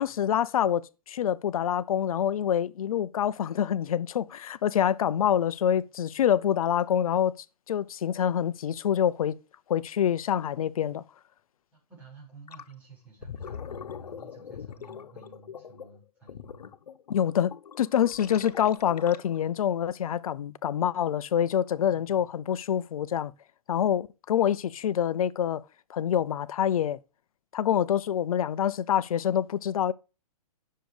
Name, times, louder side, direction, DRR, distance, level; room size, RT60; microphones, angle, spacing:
voice 1, 0.0-7.4 7.7-9.3 9.7-11.0 17.1-17.5 17.8-23.3 23.7-25.6 25.9-27.0 27.5-29.9, left 9 dB, 65° left, 0.7 m, -26 dB
voice 2, 11.7-16.7 18.3-18.4 21.9-22.3, right 4 dB, 10° right, 5.4 m, -53 dB
Gurgling, 12.5-12.7 13.1-19.5, left 7 dB, 85° left, 1.2 m, -42 dB
10.0 x 6.7 x 4.9 m
hypercardioid pair, 155°, 20 cm